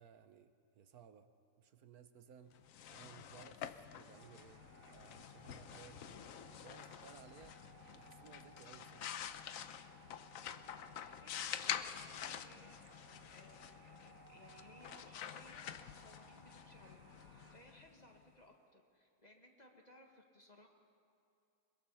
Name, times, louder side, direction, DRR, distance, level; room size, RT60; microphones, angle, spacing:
voice 1, 0.0-2.6 2.9-9.2, right 7 dB, 75° right, 9 dB, 1.4 m, -60 dB
sound 1, 2.6-18.2, left 9 dB, 65° left, 1.0 m, -48 dB
sound 2, 4.1-17.6, right 3 dB, 50° right, 2.1 m, -62 dB
voice 2, 10.9-12.8 13.3-15.7 16.0-20.7, left 1 dB, 30° left, 2 dB, 1.7 m, -63 dB
22.0 x 21.5 x 5.6 m, 2.7 s
omnidirectional pair, 1.6 m